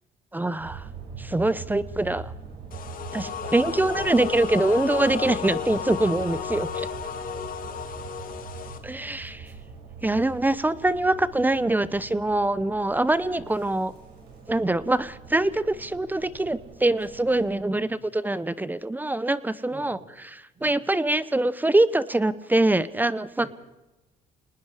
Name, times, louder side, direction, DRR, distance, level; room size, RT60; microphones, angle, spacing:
voice 1, 0.3-0.8 1.2-2.3 3.1-6.9 8.8-9.5 10.0-13.9 14.5-20.0 20.2-23.5, right 2 dB, 10° right, 16 dB, 0.7 m, -24 dB
sound 1, 0.6-17.6, right 5 dB, 80° right, 6.9 m, -43 dB
sound 2, 2.7-8.8, left 7 dB, 55° left, 2.1 m, -33 dB
voice 2, 2.8-4.2 7.1-7.5 8.4-9.3 17.5-18.0 19.7-20.1 20.5-20.8 23.4-23.5, right 2 dB, 45° right, -5 dB, 8.0 m, -49 dB
27.0 x 19.5 x 4.9 m, 1.0 s
cardioid pair, 110°, 17 cm